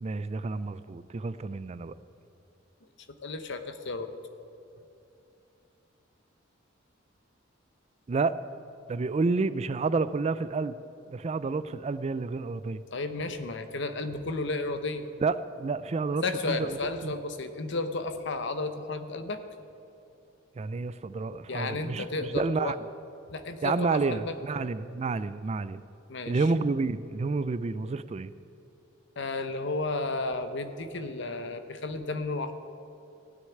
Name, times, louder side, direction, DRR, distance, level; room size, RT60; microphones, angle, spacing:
voice 1, 0.0-1.9 8.1-8.3 8.9-10.7 11.1-12.8 15.2-17.1 20.6-22.8 23.6-25.8 26.3-28.3, right 4 dB, 35° right, 15 dB, 0.4 m, -30 dB
voice 2, 3.2-4.1 12.9-15.1 16.2-19.4 21.5-22.8 23.3-24.3 26.1-26.4 29.2-32.5, left 3 dB, 65° left, 9 dB, 0.9 m, -33 dB
16.0 x 6.4 x 10.0 m, 2.8 s
head